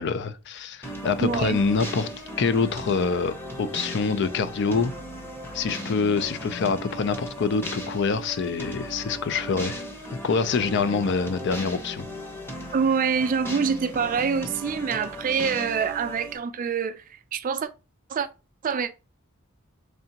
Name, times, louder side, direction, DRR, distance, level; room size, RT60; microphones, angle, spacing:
voice 1, 0.0-2.1 2.4-4.9 5.5-9.8 10.2-12.1, left 5 dB, 60° left, 0.4 m, -25 dB
sound 1, 0.8-16.4, equal, 10° left, 0.8 m, -37 dB
voice 2, 1.2-1.6 12.7-17.0 17.3-17.7 18.1-18.3 18.6-18.9, right 6 dB, 40° right, 0.3 m, -25 dB
3.7 x 3.3 x 2.8 m
head